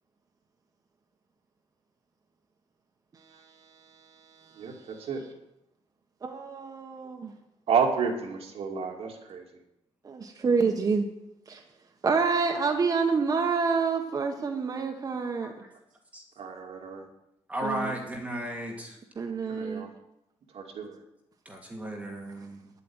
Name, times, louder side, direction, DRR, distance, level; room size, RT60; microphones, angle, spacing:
voice 1, 4.0-5.1 6.2-7.3 10.0-11.1 11.5-11.6 12.0-15.5 17.6-17.9 19.2-19.9, right 5 dB, 35° right, 3 dB, 1.3 m, -28 dB
voice 2, 7.7-9.4 16.4-17.0 19.5-19.9 20.5-21.0, right 6 dB, 70° right, 2 dB, 2.5 m, -30 dB
voice 3, 17.5-19.0 21.5-22.6, right 1 dB, 15° right, 1 dB, 2.2 m, -35 dB
10.5 x 8.4 x 8.9 m, 0.85 s
wide cardioid pair, 150°, 11 cm